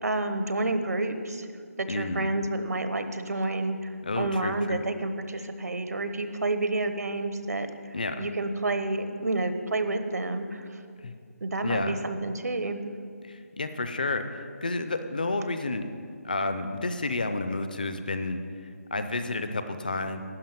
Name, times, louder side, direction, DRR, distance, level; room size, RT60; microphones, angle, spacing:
voice 1, 0.0-1.5 1.8-10.8 11.4-12.8, right 2 dB, 80° right, 9 dB, 1.1 m, -30 dB
voice 2, 1.9-2.3 4.0-4.8 7.9-8.2 11.0-11.1 11.6-12.0 13.2-15.9 16.2-18.4 18.9-20.2, left 2 dB, 30° left, 8 dB, 0.5 m, -30 dB
11.5 x 5.6 x 9.0 m, 2.2 s
hypercardioid pair, 180°, 9 cm